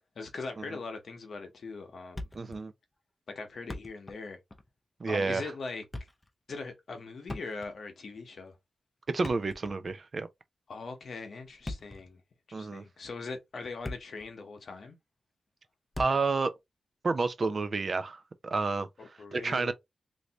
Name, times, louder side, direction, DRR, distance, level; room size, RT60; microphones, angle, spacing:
voice 1, 0.2-2.2 3.3-4.4 5.1-5.8 6.5-8.5 10.7-12.2 12.5-15.0 19.0-19.7, left 4 dB, 55° left, 0.9 m, -41 dB
Thump thud, 2.1-2.7 2.9-3.0 3.5-4.2 4.5-4.7 5.7-6.3 7.2-7.9 9.1-10.0 11.4-12.1 12.8-13.0 13.5-14.3 14.6-14.7 15.9-16.4, left 1 dB, 15° left, 0.5 m, -41 dB
voice 2, 2.3-2.7 5.0-5.5 9.1-10.3 12.5-12.8 16.0-16.5 17.0-18.9 19.3-19.7, right 4 dB, 40° right, 0.4 m, -30 dB
3.2 x 2.6 x 2.9 m
wide cardioid pair, 170°, 0 cm